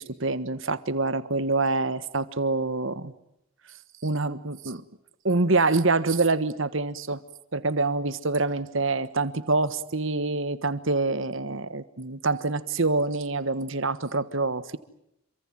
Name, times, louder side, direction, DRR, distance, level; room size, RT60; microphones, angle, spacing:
voice 1, 0.0-3.1 4.0-4.8 5.2-7.2 7.5-14.8, right 3 dB, 60° right, 14 dB, 1.4 m, -26 dB
27.5 x 25.0 x 7.6 m, 0.80 s
head